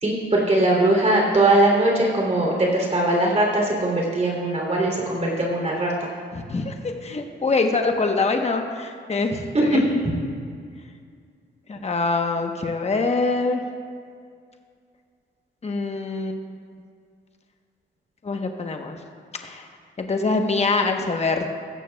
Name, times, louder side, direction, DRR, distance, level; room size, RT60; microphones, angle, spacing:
voice 1, 0.0-6.1 9.5-9.6, right 2 dB, 35° right, -2 dB, 3.0 m, -20 dB
voice 2, 6.3-9.3 9.6-9.8 11.7-13.6 15.6-16.4 18.2-19.0 19.4-19.7 20.0-21.6, left 3 dB, 35° left, 4 dB, 1.0 m, -24 dB
16.0 x 14.0 x 2.3 m, 2.2 s
cardioid pair, 75°, 20 cm